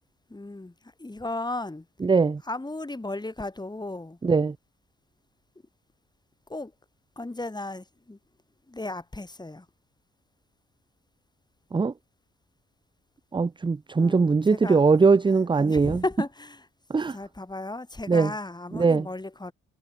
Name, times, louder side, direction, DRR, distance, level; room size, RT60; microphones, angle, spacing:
voice 1, 0.3-1.9 2.4-4.2 6.5-6.7 7.2-8.2 8.7-9.7 13.9-14.8 15.3-16.7 17.1-19.5, left 2 dB, 15° left, 5.6 m, -35 dB
voice 2, 2.0-2.4 4.2-4.5 11.7-11.9 13.3-16.0 16.9-17.1 18.1-18.3 18.7-19.0, right 4 dB, 15° right, 0.5 m, -21 dB
cardioid pair, 90°, 30 cm